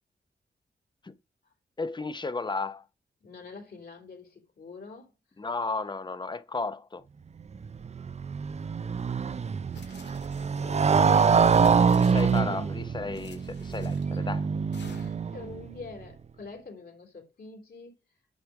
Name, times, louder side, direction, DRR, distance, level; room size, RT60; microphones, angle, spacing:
voice 1, 1.8-2.8 5.4-7.0 11.9-14.5, left 3 dB, 25° left, 0.8 m, -33 dB
voice 2, 3.2-5.1 9.8-11.2 14.1-14.3 14.9-18.0, left 4 dB, 65° left, 3.4 m, -46 dB
Motorcycle, 7.5-15.7, right 6 dB, 40° right, 0.4 m, -25 dB
sound 1, 9.7-10.8 11.4-12.6 13.1-14.2 14.7-15.4, left 5 dB, 85° left, 2.0 m, -52 dB
10.5 x 5.1 x 4.7 m
wide cardioid pair, 105°, 18 cm